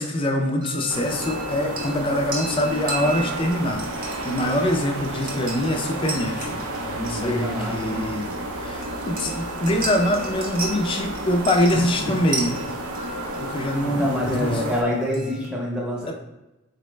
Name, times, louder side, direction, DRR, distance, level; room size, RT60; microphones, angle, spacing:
voice 1, 0.0-8.3 8.6-12.6 13.4-14.6, left 1 dB, 25° left, 3 dB, 0.3 m, -24 dB
sound 1, 0.6-15.5, right 2 dB, 40° right, 0.7 m, -36 dB
sound 2, 0.9-14.8, right 1 dB, 85° right, 0.5 m, -32 dB
voice 2, 7.1-8.0 11.7-11.9 13.8-16.1, left 1 dB, 5° right, -4 dB, 0.7 m, -26 dB
4.0 x 2.1 x 3.1 m, 1.0 s
head